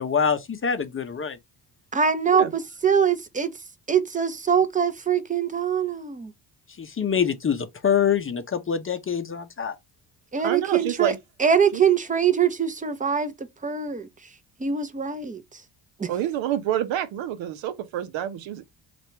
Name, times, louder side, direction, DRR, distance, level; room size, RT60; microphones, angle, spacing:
voice 1, 0.0-1.4 6.8-9.7, left 7 dB, 25° left, 0.7 m, -25 dB
voice 2, 1.9-3.5 3.9-6.3 10.3-11.1 11.4-13.3 13.6-14.1 14.6-15.4 16.0-16.1, right 7 dB, 15° right, 0.8 m, -23 dB
voice 3, 10.4-11.2 11.7-11.8 16.1-18.6, right 11 dB, 70° right, 0.8 m, -27 dB
2.7 x 2.5 x 3.3 m
hypercardioid pair, 55°, 48 cm